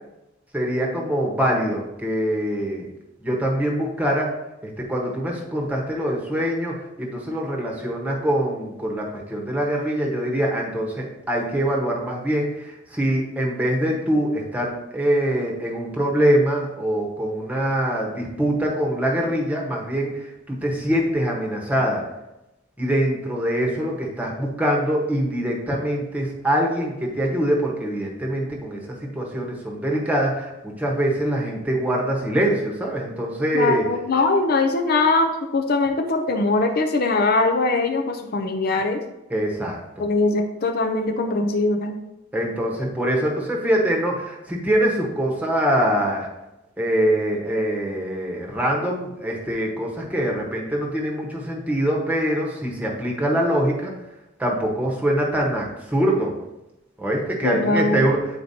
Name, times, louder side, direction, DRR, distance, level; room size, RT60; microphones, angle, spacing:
voice 1, 0.5-2.9 3.2-4.3 4.6-22.0 22.8-33.9 39.3-39.8 42.3-46.3 46.8-53.9 54.4-56.3 57.0-58.2, right 1 dB, 10° right, -1 dB, 1.1 m, -24 dB
voice 2, 33.5-39.0 40.0-42.0 57.4-58.0, left 3 dB, 50° left, 4 dB, 0.5 m, -21 dB
8.9 x 4.3 x 2.8 m, 0.94 s
head